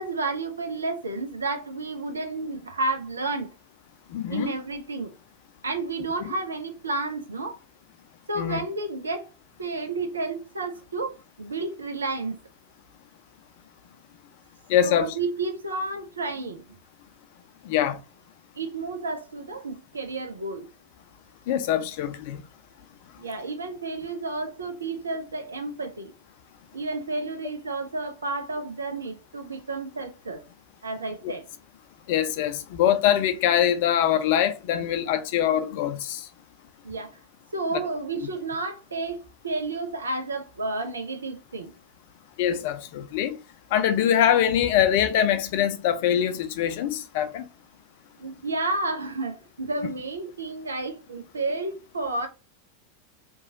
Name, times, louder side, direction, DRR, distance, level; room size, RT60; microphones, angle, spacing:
voice 1, 0.0-3.5 4.3-5.1 5.6-7.6 8.3-9.3 9.6-12.4 14.8-16.7 18.6-20.7 23.2-26.1 26.7-30.4 30.8-31.5 34.8-34.9 36.8-37.1 37.5-41.7 48.2-52.3, right 3 dB, 75° right, 0.5 m, -31 dB
voice 2, 4.1-4.5 8.4-8.6 14.7-15.1 17.6-18.0 21.5-22.4 31.2-31.3 32.1-36.3 38.2-38.3 42.4-43.4 43.7-47.5, left 10 dB, 50° left, 0.4 m, -23 dB
2.9 x 2.3 x 2.6 m
figure-of-eight pair, 90°, 0 cm